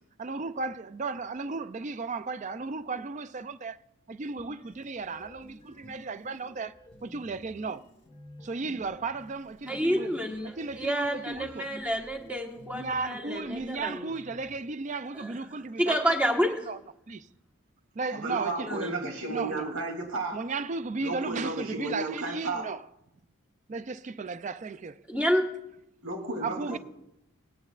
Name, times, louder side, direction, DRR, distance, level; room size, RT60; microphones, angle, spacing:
voice 1, 0.2-3.8 4.1-6.7 7.0-7.8 8.4-10.1 10.4-11.7 12.7-16.0 16.7-16.8 17.1-17.3 18.0-18.7 19.3-19.7 20.3-22.8 23.7-25.0 26.4-26.8, right 4 dB, 35° right, 0.4 m, -35 dB
sound 1, 4.3-14.6, left 1 dB, 25° left, 1.5 m, -52 dB
voice 2, 9.7-14.1 15.1-15.4 15.8-16.7 18.6-18.9 25.1-25.4 26.7-26.8, equal, 5° right, 1.2 m, -29 dB
voice 3, 18.1-20.4 21.0-22.6 26.0-26.8, right 2 dB, 80° right, 2.7 m, -33 dB
19.5 x 9.0 x 2.4 m
head